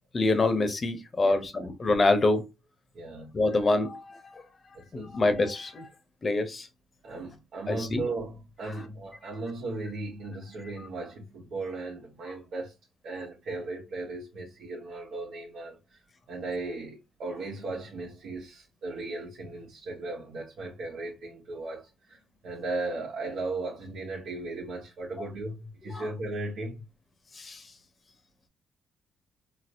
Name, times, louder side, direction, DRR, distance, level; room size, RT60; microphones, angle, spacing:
voice 1, 0.1-2.5 3.3-4.2 4.9-5.9 6.2-6.7 7.7-8.0 25.9-26.0 27.4-27.6, left 2 dB, 35° left, 0.8 m, -25 dB
voice 2, 1.2-1.7 2.9-3.3 4.7-5.1 7.0-12.7 13.0-16.0 16.3-26.8, right 2 dB, 65° right, 0.9 m, -37 dB
4.2 x 2.0 x 2.5 m
cardioid pair, 90°, 0 cm